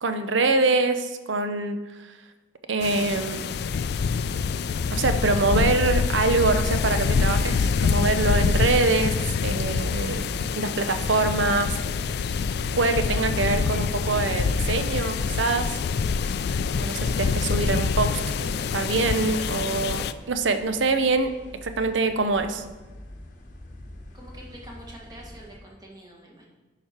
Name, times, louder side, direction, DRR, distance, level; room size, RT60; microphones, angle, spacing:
voice 1, 0.0-1.8 2.7-3.5 4.9-11.8 12.8-15.8 16.7-18.2 18.7-22.6, right 3 dB, 80° right, 9 dB, 0.6 m, -24 dB
sound 1, 2.8-20.1, left 5 dB, 60° left, 0.3 m, -25 dB
sound 2, 6.1-25.6, left 1 dB, 40° left, 0.9 m, -46 dB
voice 2, 24.1-26.5, right 1 dB, 20° right, -2 dB, 1.5 m, -46 dB
10.5 x 5.0 x 4.4 m, 1.2 s
head